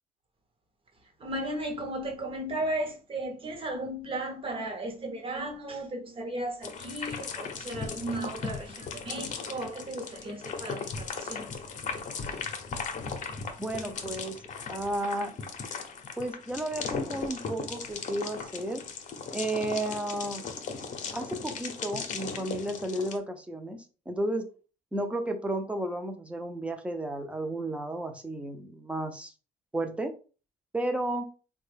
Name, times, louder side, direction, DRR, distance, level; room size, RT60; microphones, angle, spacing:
voice 1, 1.2-11.6 12.2-12.3, right 1 dB, 30° right, 0.9 m, -35 dB
sound 1, 6.6-23.2, left 5 dB, 45° left, 0.7 m, -37 dB
voice 2, 13.6-14.4 14.7-15.4 16.2-18.8 19.3-20.5 21.1-24.5 24.9-29.3 29.7-30.1 30.7-31.3, right 1 dB, 5° right, 0.6 m, -33 dB
3.4 x 2.3 x 3.3 m
cardioid pair, 110°, 17 cm